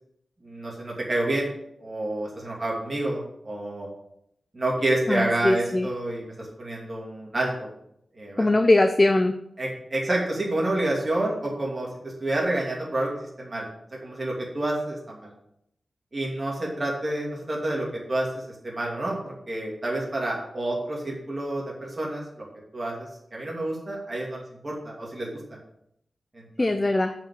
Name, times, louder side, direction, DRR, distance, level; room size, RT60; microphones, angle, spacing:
voice 1, 0.4-1.5 1.8-3.9 4.5-7.7 8.2-8.5 9.6-13.7 14.0-15.3 16.1-22.5 22.7-25.4 26.3-26.7, right 1 dB, 35° right, -3 dB, 2.7 m, -29 dB
voice 2, 5.1-5.9 8.4-9.3 26.6-27.1, left 2 dB, 25° left, 7 dB, 0.6 m, -21 dB
7.5 x 5.4 x 7.4 m, 0.75 s
wide cardioid pair, 100°, 0 cm